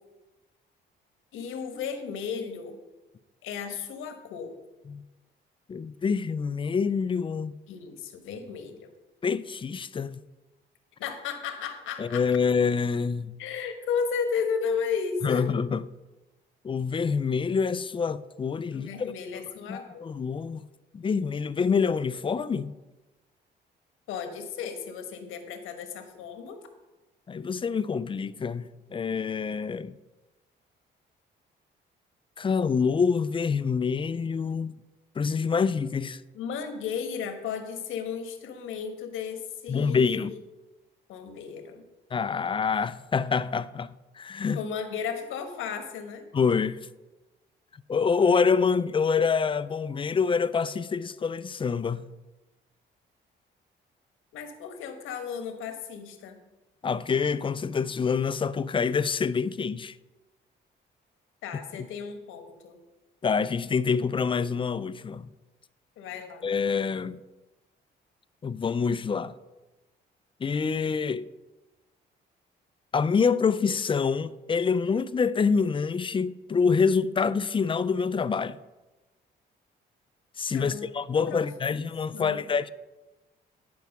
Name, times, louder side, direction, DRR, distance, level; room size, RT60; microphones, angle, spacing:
voice 1, 1.3-2.8 3.4-4.5 7.7-8.9 11.0-12.2 13.4-15.5 18.7-20.1 24.1-26.6 36.3-40.4 41.1-41.8 44.5-46.3 54.3-56.4 61.4-62.8 66.0-66.5 80.5-80.9 81.3-81.5 82.1-82.6, left 6 dB, 90° left, 1.2 m, -34 dB
voice 2, 5.7-7.5 9.2-10.2 12.0-13.3 15.2-15.8 16.6-19.1 19.7-20.6 20.9-22.7 27.3-29.9 32.4-34.7 35.2-36.2 39.7-40.3 42.1-44.6 46.3-46.9 47.9-52.1 56.8-60.0 63.2-65.3 66.4-67.2 68.4-69.3 70.4-71.3 72.9-78.6 80.4-82.7, left 5 dB, 25° left, 0.4 m, -26 dB
11.0 x 4.7 x 5.9 m
cardioid pair, 90°, 20 cm